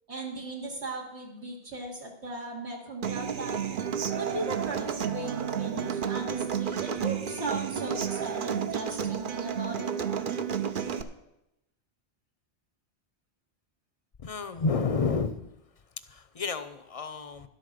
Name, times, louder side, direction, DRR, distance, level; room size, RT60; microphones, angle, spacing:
voice 1, 0.1-3.6 4.2-9.9, right 1 dB, 85° right, -1 dB, 2.4 m, -38 dB
Human voice / Acoustic guitar, 3.0-11.0, right 8 dB, 55° right, 0.9 m, -31 dB
voice 2, 14.2-15.5 16.1-17.5, left 4 dB, 40° left, 11 dB, 0.6 m, -30 dB
11.5 x 8.3 x 6.5 m, 0.86 s
omnidirectional pair, 1.1 m